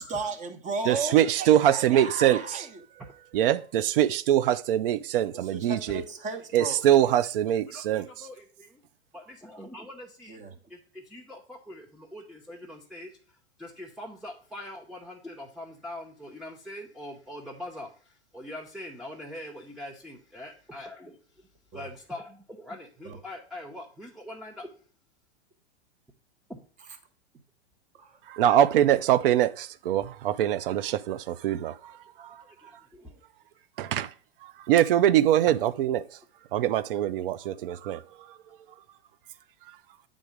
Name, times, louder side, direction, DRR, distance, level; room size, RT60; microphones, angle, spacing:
voice 1, 0.0-2.7 5.5-6.8 10.3-10.5 21.7-21.9 23.0-23.2 26.8-27.0 27.9-28.2, right 3 dB, 20° right, 1.1 m, -35 dB
voice 2, 0.9-2.7 3.3-6.0 6.5-8.3 28.2-32.8 33.8-34.1 34.4-36.2 36.5-38.4 38.7-38.8 39.6-39.8, right 11 dB, 55° right, 0.6 m, -24 dB
voice 3, 7.7-8.8 9.1-10.4 10.7-13.1 13.6-17.9 18.3-21.2 21.7-24.7 26.5-26.6 32.6-33.1, left 1 dB, ahead, 0.8 m, -43 dB
8.8 x 3.8 x 5.0 m
figure-of-eight pair, 100°, 33 cm